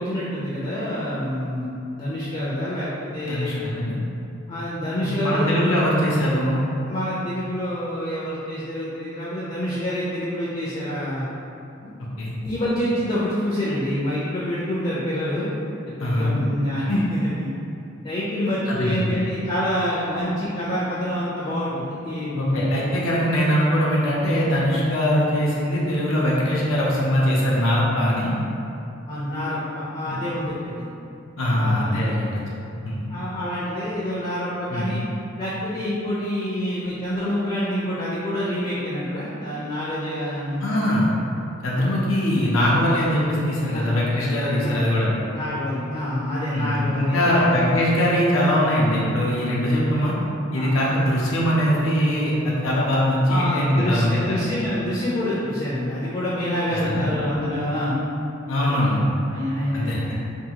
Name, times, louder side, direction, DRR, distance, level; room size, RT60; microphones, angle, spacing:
voice 1, 0.0-3.6 4.5-5.5 6.9-11.3 11.8-11.9 12.4-15.5 16.0-17.5 18.0-22.7 29.1-30.9 31.5-31.9 33.1-35.0 35.4-40.6 43.7-43.9 44.6-44.8 45.3-47.5 49.4-49.5 50.5-50.7 53.3-57.9 58.6-58.9 59.3-60.1, equal, 30° left, -8 dB, 0.4 m, -27 dB
voice 2, 3.2-3.9 5.0-6.6 12.2-12.3 16.0-16.3 18.7-19.0 22.4-28.3 30.0-30.2 31.4-32.6 32.8-33.0 34.7-34.9 40.6-41.1 41.6-45.1 46.5-50.1 50.5-54.4 56.8-57.1 58.5-59.1 59.7-60.2, equal, 90° left, -5 dB, 0.5 m, -21 dB
2.7 x 2.3 x 2.8 m, 2.7 s
head